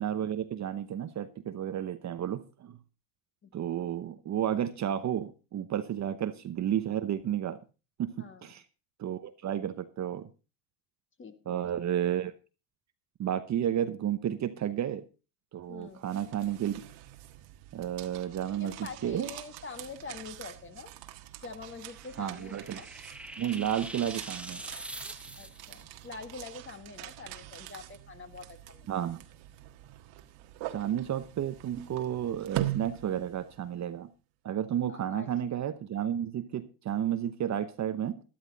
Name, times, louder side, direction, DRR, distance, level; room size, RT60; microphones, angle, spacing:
voice 1, 0.0-2.8 3.5-7.6 8.0-8.2 8.4-8.6 9.0-10.3 11.5-12.3 13.2-15.0 15.5-16.8 17.7-18.7 19.0-19.3 22.2-22.8 23.4-24.6 28.9-29.2 30.7-34.1 34.4-38.2, right 10 dB, 35° right, 10 dB, 1.0 m, -32 dB
voice 2, 8.2-8.5 11.2-11.7 15.7-16.0 18.6-20.9 21.4-22.9 25.4-28.9 34.9-35.6, left 4 dB, 25° left, 9 dB, 1.8 m, -45 dB
sound 1, 15.8-33.8, right 15 dB, 65° right, 1.6 m, -43 dB
sound 2, 21.7-25.8, right 1 dB, ahead, 0.9 m, -44 dB
13.0 x 12.0 x 4.0 m, 0.32 s
supercardioid pair, 110°, 49 cm